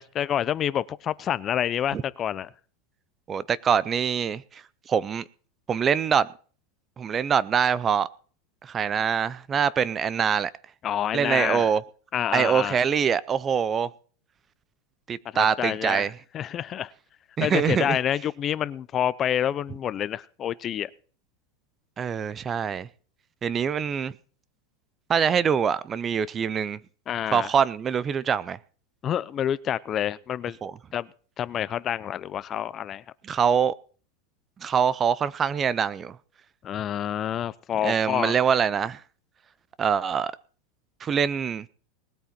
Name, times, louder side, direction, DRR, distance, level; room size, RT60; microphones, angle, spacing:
voice 1, 0.0-2.5 10.8-11.7 12.1-12.8 15.3-16.1 16.3-16.9 17.4-20.9 27.1-27.5 29.0-30.6 30.9-31.1 31.4-33.0 36.6-38.4, left 10 dB, 30° left, 0.6 m, -28 dB
voice 2, 3.3-4.6 4.9-5.2 5.7-6.3 7.0-8.1 8.6-10.5 11.1-11.8 12.3-13.9 15.1-16.1 17.4-18.0 22.0-22.9 23.4-24.1 25.1-26.8 27.3-28.6 30.6-30.7 33.2-33.7 34.6-36.2 37.8-39.0 39.8-40.3 41.0-41.7, right 7 dB, 25° right, 0.6 m, -24 dB
20.0 x 9.0 x 4.4 m
supercardioid pair, 140°, 0 cm